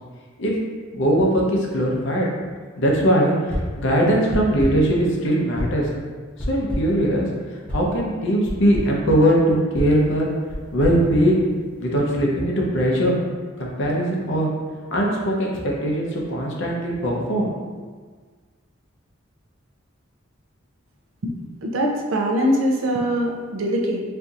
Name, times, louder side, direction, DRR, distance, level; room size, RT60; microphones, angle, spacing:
voice 1, 0.9-2.3 2.8-5.9 6.5-10.3 10.7-11.5 11.8-13.2 13.6-14.5 14.9-17.7, equal, 65° left, -2 dB, 0.8 m, -20 dB
sound 1, 3.5-3.9 4.3-4.9 5.6-5.9 6.4-7.0 7.7-7.9 8.4-9.0 9.7-11.8, equal, 10° left, 0.8 m, -30 dB
voice 2, 21.6-24.0, equal, 80° right, 1 dB, 0.5 m, -22 dB
4.3 x 2.7 x 2.5 m, 1.5 s
head